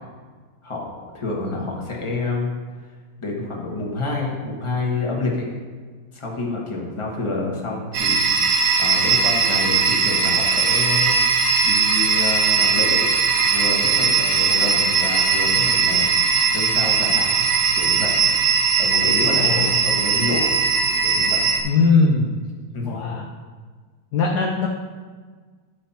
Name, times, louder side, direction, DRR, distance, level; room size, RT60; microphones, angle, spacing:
voice 1, 0.6-2.5 3.2-5.5 6.1-11.2 11.6-13.0 13.5-17.3 17.7-18.2 18.8-20.5 21.0-21.4 22.7-23.1, left 3 dB, 15° left, -2 dB, 1.3 m, -28 dB
sound 1, 7.9-21.6, right 5 dB, 85° right, 1.9 m, -19 dB
voice 2, 19.3-19.8 21.6-22.4 22.8-23.3 24.1-24.7, left 4 dB, 65° left, 1 dB, 1.1 m, -20 dB
11.5 x 5.4 x 4.3 m, 1.5 s
omnidirectional pair, 2.3 m